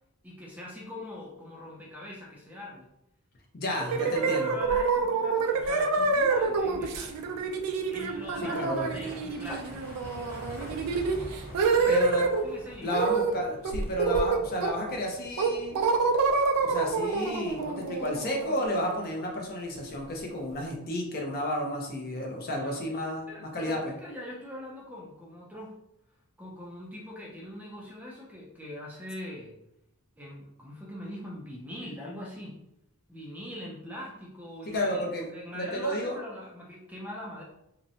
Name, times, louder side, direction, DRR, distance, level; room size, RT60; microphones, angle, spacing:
voice 1, 0.2-2.9 3.7-7.2 7.9-9.8 11.7-12.0 12.4-13.0 22.6-22.8 23.3-25.8 26.4-29.6 30.2-32.6 33.1-37.4, left 1 dB, 5° right, -3 dB, 0.4 m, -42 dB
voice 2, 3.5-4.5 8.5-8.9 11.9-12.2 12.8-15.9 16.6-23.9 34.7-36.2, left 1 dB, 45° left, 0 dB, 0.6 m, -32 dB
sound 1, 3.9-12.4 12.9-13.3 13.6-14.9 15.4-19.1, right 4 dB, 85° right, 0.4 m, -27 dB
sound 2, 6.0-17.8, equal, 10° left, 0.9 m, -47 dB
2.6 x 2.1 x 2.6 m, 0.83 s
head